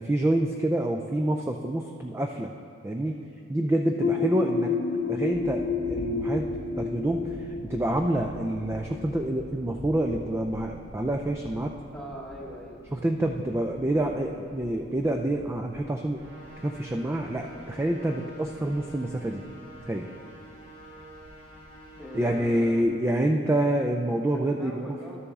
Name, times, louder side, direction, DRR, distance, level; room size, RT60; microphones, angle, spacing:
voice 1, 0.0-2.5 2.8-3.2 3.5-4.7 5.1-6.5 6.8-11.7 12.9-16.2 16.6-19.4 19.9-20.1 22.1-25.0, right 1 dB, 10° right, 3 dB, 0.3 m, -27 dB
sound 1, 4.0-9.6, left 4 dB, 75° left, 1.0 m, -30 dB
sound 2, 5.0-23.0, left 1 dB, 40° left, 0.8 m, -47 dB
voice 2, 11.9-12.8 22.0-22.9 24.3-25.2, equal, 5° left, -3 dB, 1.1 m, -41 dB
sound 3, 16.1-22.7, right 1 dB, 75° right, 2.0 m, -48 dB
12.0 x 6.9 x 3.6 m, 2.4 s
head